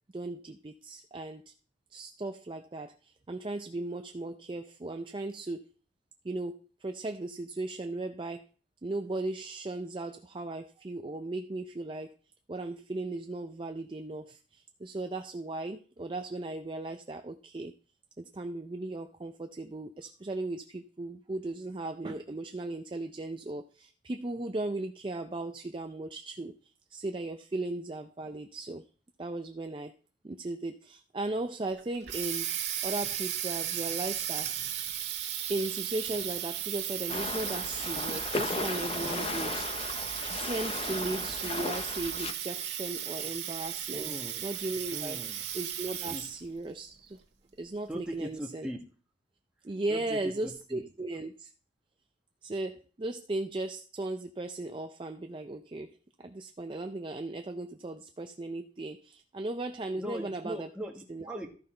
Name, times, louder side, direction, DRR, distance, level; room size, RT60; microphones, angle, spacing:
voice 1, 0.1-1.5 1.9-5.7 6.2-8.5 8.8-12.1 12.5-17.7 18.2-26.5 26.9-28.9 29.2-29.9 30.2-32.5 32.8-34.5 35.5-39.9 40.4-44.1 44.4-45.2 45.5-47.2 47.6-48.7 49.6-51.5 52.4-60.7 61.1-61.2, right 2 dB, 25° right, 0.4 m, -37 dB
Water tap faucet, 31.8-46.5, right 10 dB, 70° right, 1.6 m, -35 dB
sound 1, 37.1-42.3, left 3 dB, 30° left, 0.5 m, -36 dB
voice 2, 43.9-44.4 44.9-45.4 46.1-46.3 47.9-48.8 49.9-50.8 60.0-61.5, equal, 5° right, 1.5 m, -40 dB
13.5 x 5.6 x 4.3 m
head